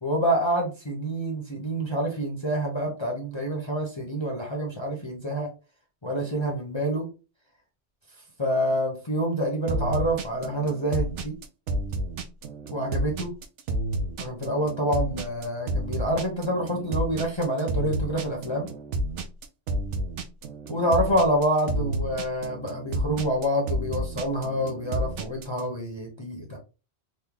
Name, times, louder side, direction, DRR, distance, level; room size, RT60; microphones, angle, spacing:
voice 1, 0.0-5.5 6.0-7.1 8.4-11.4 12.7-13.3 14.2-18.7 20.7-26.6, right 1 dB, 30° left, -1 dB, 0.6 m, -27 dB
sound 1, 9.7-25.6, right 1 dB, 90° right, 0.9 m, -30 dB
3.1 x 2.1 x 3.6 m, 0.32 s
omnidirectional pair, 1.2 m